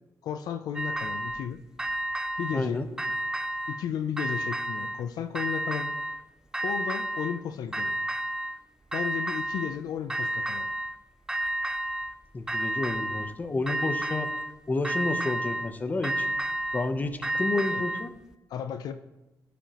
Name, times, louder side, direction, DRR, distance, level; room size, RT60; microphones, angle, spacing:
voice 1, 0.2-1.6 2.4-2.8 3.7-5.9 6.6-7.9 8.9-10.7 17.7-17.8 18.5-18.9, left 8 dB, 85° left, 9 dB, 0.4 m, -33 dB
sound 1, 0.8-1.5 1.8-2.6 3.0-3.8 4.2-5.0 5.4-6.2 6.5-7.4 7.7-8.6 8.9-9.8 10.1-11.0 11.3-12.1 12.5-13.3 13.7-14.5 14.8-15.7 16.0-18.1, right 1 dB, 10° right, 0.4 m, -31 dB
voice 2, 2.5-2.9 12.3-14.3 14.7-16.3 16.7-18.1, left 2 dB, 25° left, 8 dB, 0.7 m, -30 dB
15.0 x 5.1 x 2.9 m, 1.0 s
cardioid pair, 105°, 7 cm